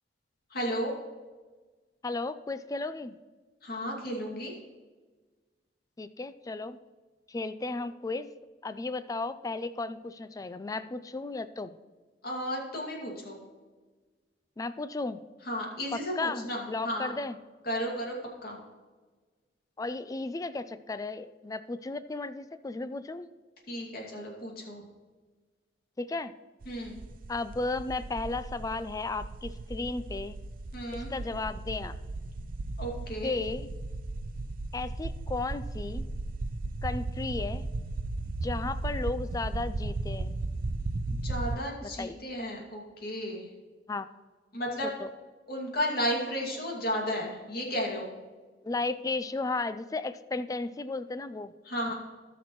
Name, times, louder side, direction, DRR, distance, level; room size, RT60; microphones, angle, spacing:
voice 1, 0.5-0.9 3.6-4.5 12.2-13.4 15.4-17.2 17.6-18.1 18.4-18.6 23.7-24.8 26.7-27.0 30.7-31.1 32.8-33.3 41.2-43.5 44.5-44.9 45.5-48.1 51.6-51.9, equal, 60° left, -1 dB, 2.4 m, -33 dB
voice 2, 2.0-3.2 6.0-6.8 7.3-8.3 8.6-11.7 14.6-15.2 16.2-17.4 19.8-23.3 26.0-26.3 27.3-30.4 30.9-32.0 33.2-33.7 34.7-36.1 36.8-37.7 38.4-40.4 41.8-42.2 43.9-44.1 45.0-45.1 48.6-51.5, left 3 dB, 20° left, 12 dB, 0.4 m, -34 dB
sound 1, 26.6-41.6, right 2 dB, 55° right, 0.5 m, -36 dB
18.0 x 5.9 x 3.1 m, 1.4 s
head